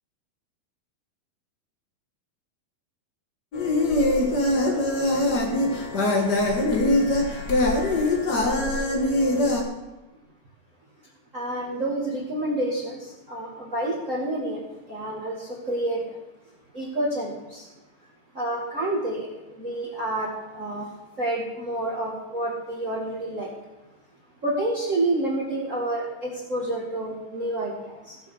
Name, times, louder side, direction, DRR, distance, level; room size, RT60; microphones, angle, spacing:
sound 1, 3.5-9.6, left 1 dB, 90° left, 0.9 m, -22 dB
voice 1, 11.3-16.2 16.7-17.7 18.3-23.5 24.4-28.2, right 1 dB, 40° right, -4 dB, 1.1 m, -29 dB
17.0 x 7.4 x 4.9 m, 1.0 s
omnidirectional pair, 4.5 m